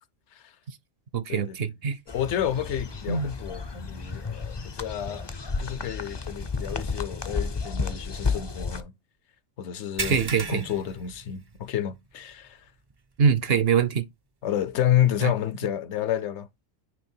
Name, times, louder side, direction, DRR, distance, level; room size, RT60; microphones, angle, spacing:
voice 1, 1.1-2.0 3.1-3.3 10.1-10.6 13.2-14.1 15.2-15.3, right 6 dB, 60° right, 0.8 m, -23 dB
voice 2, 2.1-5.3 5.6-8.9 9.6-10.2 10.5-12.6 14.4-16.5, left 11 dB, 70° left, 0.9 m, -29 dB
sound 1, 2.1-8.8, left 4 dB, 35° left, 0.4 m, -32 dB
sound 2, 10.0-11.9 12.2-12.4 12.9-13.0 14.7-14.8, right 4 dB, 40° right, 0.3 m, -35 dB
9.6 x 3.3 x 4.4 m
omnidirectional pair, 1.3 m